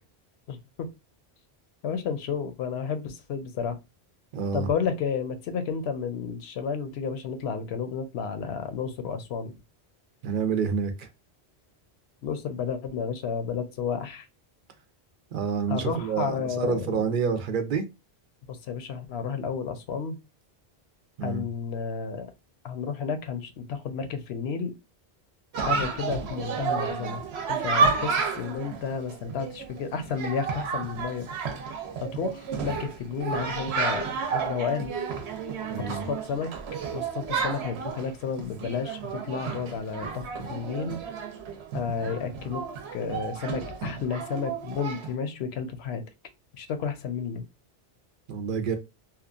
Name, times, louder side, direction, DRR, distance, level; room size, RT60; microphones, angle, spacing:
voice 1, 0.5-0.9 1.8-3.8 4.5-9.5 12.2-14.3 15.7-16.9 18.5-20.2 21.2-22.3 22.6-24.7 25.6-27.2 27.5-31.3 32.0-34.0 34.3-34.9 35.9-36.5 36.9-40.2 40.5-41.0 41.7-42.6 42.9-46.0 46.6-47.4, left 6 dB, 80° left, 0.8 m, -31 dB
voice 2, 4.3-4.7 10.2-11.1 15.3-17.9 21.2-21.5 35.7-36.0 48.3-48.8, right 6 dB, 60° right, 0.6 m, -28 dB
Chatter, 25.5-45.1, right 5 dB, 80° right, 0.9 m, -31 dB
2.8 x 2.2 x 2.4 m
omnidirectional pair, 1.1 m